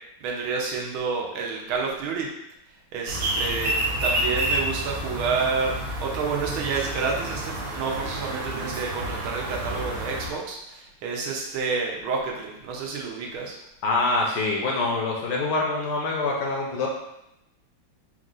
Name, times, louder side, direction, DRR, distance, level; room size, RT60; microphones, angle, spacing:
voice 1, 0.2-2.3 2.9-3.7 4.0-5.8 6.0-13.6, right 4 dB, 85° right, -1 dB, 1.6 m, -29 dB
sound 1, 3.1-10.3, right 1 dB, 65° right, 1.6 m, -29 dB
voice 2, 13.8-16.9, left 3 dB, 70° left, -1 dB, 1.1 m, -25 dB
4.5 x 2.4 x 3.8 m, 0.86 s
omnidirectional pair, 2.2 m